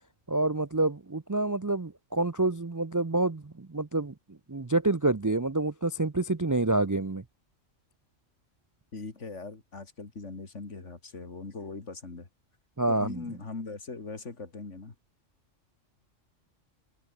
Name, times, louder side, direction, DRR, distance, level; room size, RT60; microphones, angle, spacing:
voice 1, 0.3-7.2 12.8-13.2, right 2 dB, 25° right, 0.4 m, -28 dB
voice 2, 8.9-12.3 12.9-14.9, left 3 dB, 70° left, 3.0 m, -40 dB
omnidirectional pair, 1.3 m